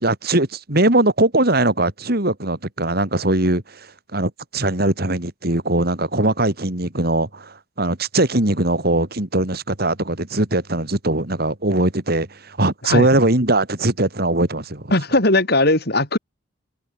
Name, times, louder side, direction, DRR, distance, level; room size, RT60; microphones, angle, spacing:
voice 1, 0.0-3.9 4.1-14.9, right 2 dB, 55° right, 3.5 m, -20 dB
voice 2, 14.9-16.2, left 2 dB, 60° left, 7.8 m, -18 dB
open air
head